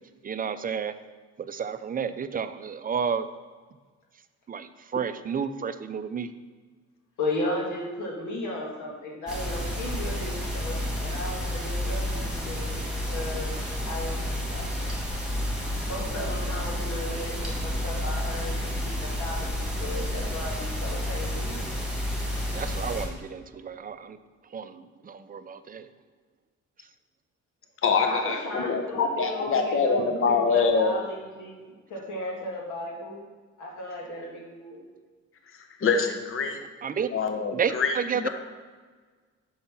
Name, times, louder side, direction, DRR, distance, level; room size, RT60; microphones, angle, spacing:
voice 1, 0.2-0.9 1.5-3.2 4.5-6.3 22.5-24.2 24.5-24.7 25.1-25.8 36.8-37.1 37.5-38.3, right 7 dB, 30° right, 12 dB, 0.4 m, -31 dB
voice 2, 7.2-12.8 13.1-13.5 13.8-14.7 15.8-21.7 28.0-33.2 33.6-34.8, left 1 dB, 80° left, -2 dB, 1.8 m, -35 dB
sound 1, 9.3-23.1, equal, 5° right, 2.4 m, -30 dB
voice 3, 27.8-31.0 35.8-36.6 37.1-38.3, left 5 dB, 45° left, 5 dB, 0.9 m, -25 dB
5.6 x 5.3 x 5.9 m, 1.4 s
cardioid pair, 90°, 30 cm